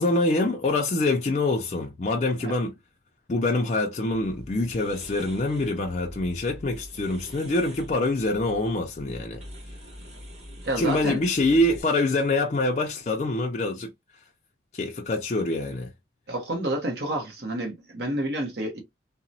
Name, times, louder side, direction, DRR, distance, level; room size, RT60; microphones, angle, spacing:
voice 1, 0.0-2.7 3.3-9.4 10.8-13.9 14.7-15.9, left 2 dB, 35° left, 0.3 m, -25 dB
sound 1, 4.1-11.8, equal, 35° right, 1.0 m, -44 dB
voice 2, 10.6-11.2 16.3-18.8, right 1 dB, 60° right, 0.8 m, -29 dB
2.8 x 2.0 x 2.6 m
head